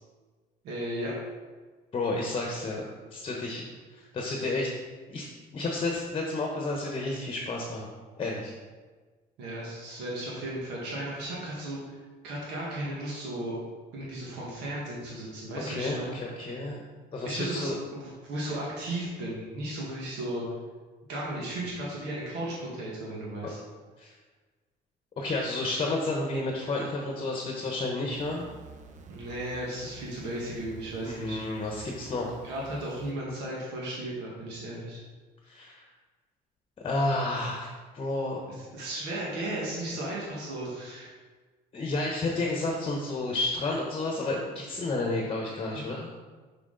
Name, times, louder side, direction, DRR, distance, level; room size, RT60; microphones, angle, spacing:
voice 1, 0.6-1.1 9.4-12.0 12.2-13.6 13.9-16.2 17.2-20.4 21.1-23.6 29.1-31.4 32.4-35.0 38.7-41.2 42.3-42.4, right 1 dB, 90° right, -5 dB, 1.6 m, -35 dB
voice 2, 1.9-2.8 3.1-3.6 3.9-4.7 5.1-7.9 8.2-8.5 15.7-16.8 17.1-17.8 24.0-24.1 25.2-28.5 31.0-32.3 35.4-35.8 36.8-37.7 37.9-38.4 41.7-46.1, left 2 dB, 35° left, 0 dB, 1.0 m, -31 dB
sound 1, 28.1-33.1, right 3 dB, 45° right, 0.7 m, -49 dB
6.2 x 5.8 x 3.8 m, 1.4 s
cardioid pair, 110°, 17 cm